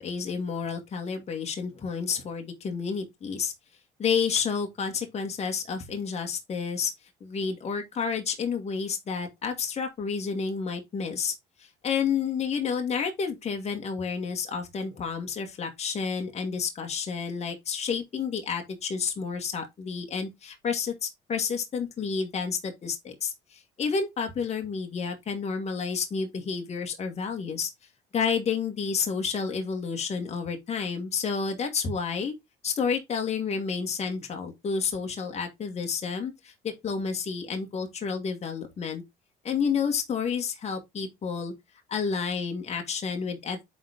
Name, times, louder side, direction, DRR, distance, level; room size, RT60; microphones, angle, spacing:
voice 1, 0.0-3.5 4.0-6.9 7.2-11.3 11.6-27.7 28.1-32.3 32.6-39.0 39.4-41.5 41.9-43.6, left 6 dB, 40° left, 2.0 m, -30 dB
9.2 x 4.1 x 3.5 m
cardioid pair, 110°, 17 cm